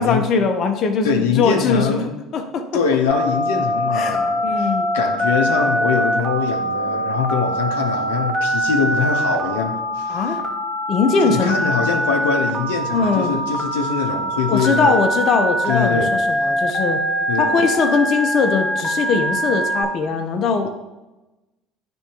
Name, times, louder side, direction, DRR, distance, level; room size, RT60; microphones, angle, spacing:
voice 1, 0.0-2.8 3.9-4.9 10.1-10.4 10.9-11.6 12.9-13.4 14.5-17.0 17.4-20.7, left 4 dB, 50° left, 5 dB, 0.7 m, -21 dB
voice 2, 1.0-2.1 2.7-4.7 4.9-10.2 11.2-15.1 15.7-16.1 17.3-17.5, left 6 dB, 90° left, 2 dB, 0.7 m, -23 dB
Telephone, 3.1-19.8, equal, 10° left, 1.4 m, -23 dB
10.0 x 3.5 x 2.9 m, 1.1 s
hypercardioid pair, 80°, 0 cm